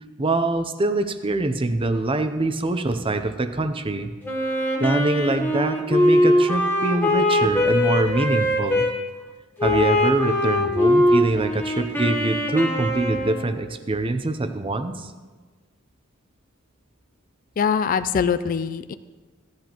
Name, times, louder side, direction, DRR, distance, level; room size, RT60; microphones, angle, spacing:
voice 1, 0.2-4.1 4.8-8.9 9.6-15.1, right 2 dB, 25° right, 9 dB, 0.6 m, -24 dB
Wind instrument woodwind instrument, 4.2-8.9 9.6-13.5, left 1 dB, 10° left, 1.2 m, -21 dB
voice 2, 17.6-18.9, left 6 dB, 40° left, 12 dB, 0.3 m, -23 dB
16.5 x 10.5 x 3.0 m, 1.4 s
head